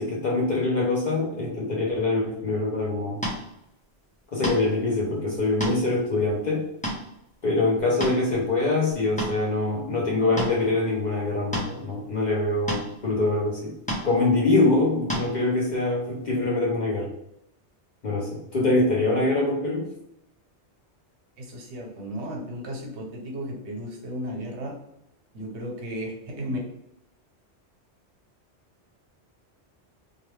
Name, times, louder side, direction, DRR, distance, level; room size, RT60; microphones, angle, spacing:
voice 1, 0.0-3.2 4.3-6.7 7.4-13.7 14.0-17.1 18.0-19.9, left 2 dB, 55° left, -3 dB, 0.5 m, -24 dB
sound 1, 3.2-3.4 4.4-4.7 5.4-5.8 6.3-6.4 6.8-7.0 7.8-8.3 8.9-9.4 10.4-10.5 11.5-11.7 12.7-12.9 13.9-14.1 15.1-15.3, equal, 10° left, 0.5 m, -29 dB
voice 2, 21.7-24.7 25.3-26.1 26.4-26.6, equal, 75° right, 0 dB, 1.0 m, -34 dB
2.3 x 2.3 x 3.1 m, 0.80 s
omnidirectional pair, 1.2 m